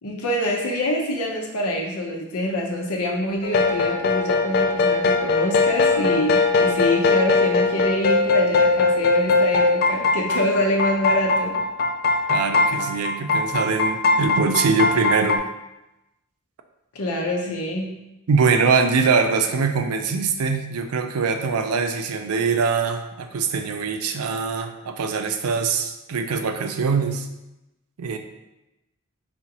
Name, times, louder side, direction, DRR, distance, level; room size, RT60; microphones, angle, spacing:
voice 1, 0.0-11.6 16.9-17.9, left 1 dB, 85° left, -1 dB, 0.7 m, -25 dB
sound 1, 3.4-15.4, left 3 dB, 45° left, 0.3 m, -20 dB
voice 2, 12.3-15.4 17.5-17.6 18.3-27.3 28.0-28.2, right 5 dB, 80° right, 6 dB, 0.5 m, -23 dB
4.2 x 3.6 x 2.9 m, 0.94 s
head